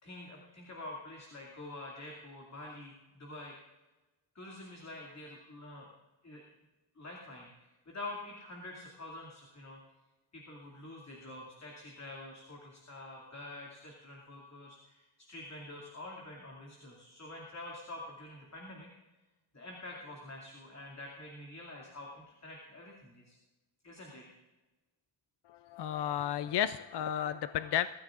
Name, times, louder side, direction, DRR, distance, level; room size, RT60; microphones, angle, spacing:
voice 1, 0.0-3.6 4.3-5.9 6.2-6.4 7.0-9.8 10.3-18.9 19.5-23.4 23.8-24.2, left 2 dB, 35° left, -2 dB, 2.5 m, -47 dB
voice 2, 25.5-27.9, left 10 dB, 60° left, 12 dB, 0.5 m, -33 dB
23.5 x 14.0 x 2.5 m, 1.1 s
wide cardioid pair, 120°, 45 cm